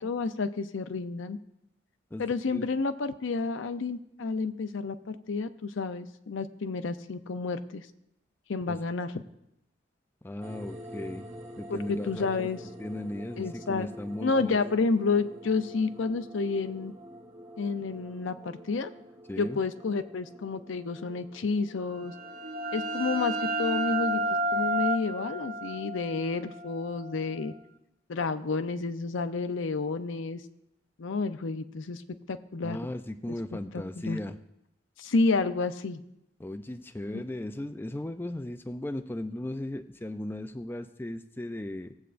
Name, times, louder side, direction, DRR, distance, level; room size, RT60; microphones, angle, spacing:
voice 1, 0.0-1.4 2.2-7.9 8.5-9.2 11.7-12.6 13.4-13.9 14.2-16.9 17.6-18.9 19.4-22.1 22.7-24.2 24.5-27.5 28.1-30.4 31.0-32.0 32.3-32.8 33.3-33.4 34.0-34.2 35.0-36.0 37.1-37.2, left 4 dB, 85° left, 10 dB, 0.6 m, -30 dB
voice 2, 10.2-11.3 11.6-12.5 12.8-14.6 19.3-19.6 32.6-34.4 36.4-41.9, left 1 dB, 10° left, 8 dB, 0.4 m, -36 dB
sound 1, 10.4-26.3, equal, 30° right, 1.7 m, -47 dB
sound 2, 22.0-27.5, right 1 dB, 50° right, 0.7 m, -31 dB
18.0 x 8.0 x 2.5 m, 0.85 s
head